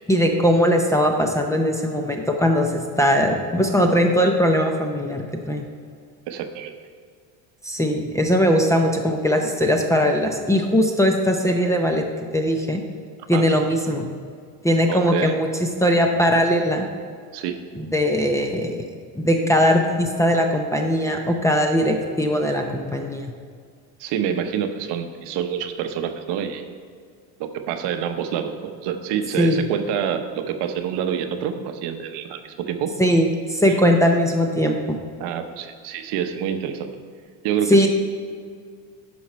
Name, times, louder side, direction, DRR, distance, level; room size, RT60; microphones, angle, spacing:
voice 1, 0.1-5.7 7.6-12.0 12.3-12.8 13.3-14.0 14.6-16.9 17.8-18.9 19.2-23.3 29.4-29.6 33.0-35.0 37.7-37.9, equal, 5° left, 3 dB, 0.5 m, -20 dB
voice 2, 6.3-6.7 13.3-13.5 14.9-15.3 17.3-17.6 24.0-26.6 27.4-33.0 35.2-36.9 37.4-37.9, right 8 dB, 65° right, 7 dB, 0.9 m, -27 dB
10.5 x 5.8 x 4.3 m, 2.1 s
cardioid pair, 135°, 43 cm